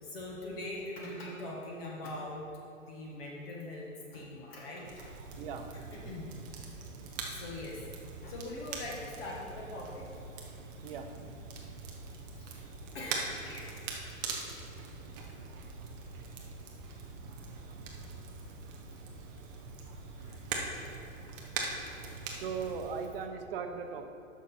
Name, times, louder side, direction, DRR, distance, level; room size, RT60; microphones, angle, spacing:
voice 1, 0.0-2.5 2.7-5.1 5.7-6.3 7.2-7.8 8.2-10.1 12.3-12.5 12.9-13.7 14.3-14.5 18.9-19.0 20.2-20.6, left 1 dB, 45° left, -3 dB, 1.5 m, -42 dB
Crackle, 4.8-23.1, right 4 dB, 15° right, 0.4 m, -42 dB
voice 2, 22.4-24.0, right 6 dB, 40° right, 6 dB, 0.8 m, -38 dB
10.0 x 6.2 x 4.2 m, 2.7 s
hypercardioid pair, 140°, 41 cm